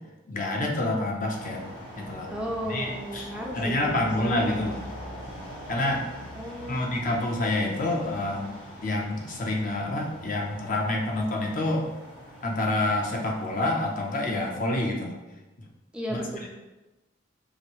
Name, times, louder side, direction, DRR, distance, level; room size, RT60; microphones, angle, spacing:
voice 1, 0.3-1.6 2.0-2.3 2.7-4.8 5.7-6.0 6.7-8.5 8.8-11.9 12.4-15.1 16.1-16.2, left 1 dB, 45° left, 0 dB, 0.6 m, -27 dB
sound 1, 1.3-14.4, equal, 70° left, 1.2 m, -43 dB
voice 2, 2.3-4.3 6.4-7.0 15.9-16.5, equal, 5° right, -2 dB, 0.3 m, -35 dB
4.9 x 2.7 x 3.0 m, 1.1 s
head